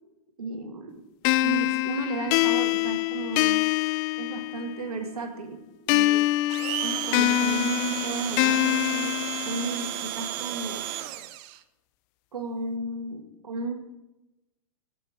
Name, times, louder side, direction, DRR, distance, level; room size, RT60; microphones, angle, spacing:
voice 1, 0.4-1.0 1.4-3.6 4.2-6.3 6.8-9.2 9.4-11.0 12.3-13.7, right 3 dB, 85° right, 6 dB, 1.8 m, -34 dB
sound 1, 1.2-4.9 5.9-9.9, left 16 dB, 35° left, 0.4 m, -25 dB
Domestic sounds home sounds, 6.5-11.6, right 14 dB, 40° right, 0.6 m, -33 dB
15.0 x 5.2 x 6.3 m, 0.98 s
hypercardioid pair, 120°, 19 cm